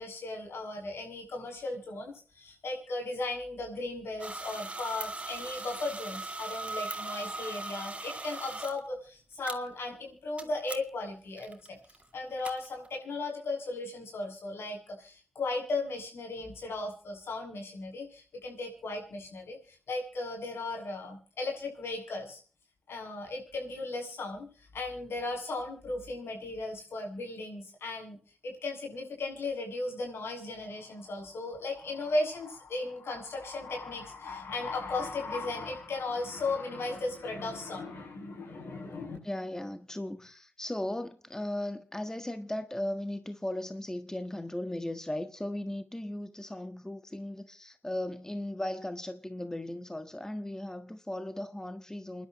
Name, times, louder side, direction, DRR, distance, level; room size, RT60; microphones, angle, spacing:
voice 1, 0.0-11.8 12.1-22.4 22.9-39.2, left 2 dB, 80° left, 7.7 m, -36 dB
sound 1, 4.2-8.8 9.4-9.6 10.4-10.5 10.7-10.8 11.4-13.0, right 2 dB, 30° right, 2.4 m, -39 dB
voice 2, 39.2-52.3, left 1 dB, 15° left, 1.5 m, -37 dB
29.0 x 11.5 x 3.1 m
cardioid pair, 60°, 4 cm